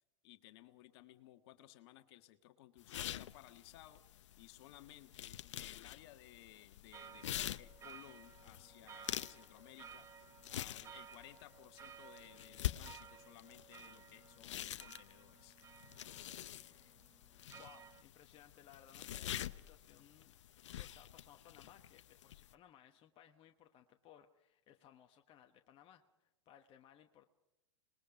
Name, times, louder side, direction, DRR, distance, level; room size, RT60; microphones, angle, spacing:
voice 1, 0.2-15.6, left 14 dB, 55° left, 8 dB, 1.6 m, -59 dB
sound 1, 2.8-22.5, left 12 dB, 75° left, 0.7 m, -47 dB
sound 2, 6.9-18.0, right 8 dB, 20° right, 0.6 m, -57 dB
voice 2, 17.6-20.4 20.7-27.3, left 10 dB, 35° left, 5 dB, 1.2 m, -62 dB
26.5 x 20.5 x 5.2 m, 0.91 s
hypercardioid pair, 115°, 16 cm